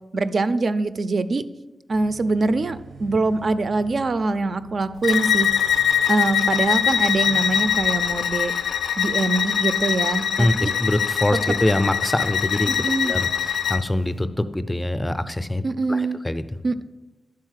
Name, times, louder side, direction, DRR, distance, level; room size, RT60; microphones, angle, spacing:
voice 1, 0.1-1.5 1.9-5.5 6.1-8.5 9.0-10.7 11.5-11.6 12.7-13.1 15.6-16.2 16.6-16.8, right 3 dB, 50° right, 12 dB, 0.4 m, -23 dB
sound 1, 1.9-8.2, right 4 dB, 85° right, 0.7 m, -44 dB
Bowed string instrument, 5.0-13.8, left 8 dB, 85° left, 0.3 m, -23 dB
voice 2, 10.4-15.6 15.9-16.4, left 1 dB, 15° left, 12 dB, 0.4 m, -24 dB
10.5 x 4.0 x 6.4 m, 1.1 s
wide cardioid pair, 120°, 0 cm